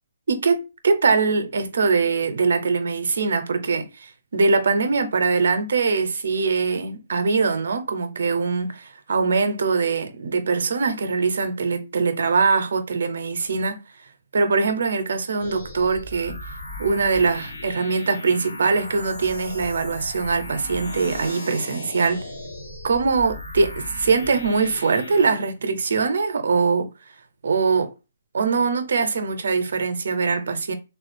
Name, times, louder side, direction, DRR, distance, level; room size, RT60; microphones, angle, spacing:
voice 1, 0.3-13.8 14.3-16.4 16.8-22.3 22.8-26.9 27.4-27.9 28.3-30.7, right 4 dB, 60° right, 0.6 m, -22 dB
sound 1, 15.4-25.3, left 1 dB, 75° left, 1.7 m, -36 dB
3.5 x 2.3 x 2.5 m
hypercardioid pair, 180°, 0 cm